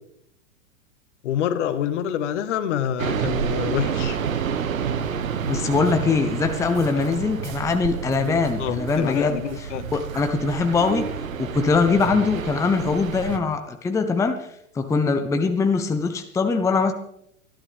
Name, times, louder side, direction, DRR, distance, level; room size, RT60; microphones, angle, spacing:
voice 1, 1.2-4.2 8.6-9.9, left 9 dB, 60° left, 11 dB, 1.5 m, -26 dB
sound 1, 3.0-13.4, right 7 dB, 75° right, 1.6 m, -29 dB
voice 2, 5.5-11.0 11.4-14.5 14.7-16.9, left 4 dB, 5° left, 7 dB, 0.8 m, -22 dB
27.5 x 11.5 x 3.5 m, 0.74 s
hypercardioid pair, 115°, 41 cm